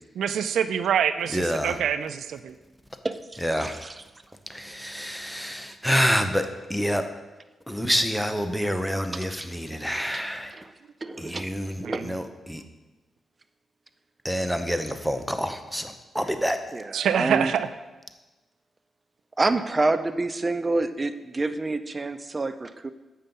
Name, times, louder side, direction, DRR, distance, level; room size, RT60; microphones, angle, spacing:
voice 1, 0.2-2.5 11.8-12.0 16.9-17.7, right 8 dB, 85° right, 12 dB, 0.3 m, -25 dB
voice 2, 1.3-1.8 3.4-3.7 4.5-7.0 7.7-10.5 11.4-12.6 14.2-16.6, equal, ahead, 8 dB, 0.8 m, -27 dB
voice 3, 3.0-4.0 9.1-9.3 10.1-10.3 11.3-11.5 11.8-12.1 16.7-17.5 19.4-22.9, right 2 dB, 30° right, 11 dB, 0.5 m, -27 dB
7.3 x 5.6 x 5.3 m, 1.1 s
cardioid pair, 70°, 0 cm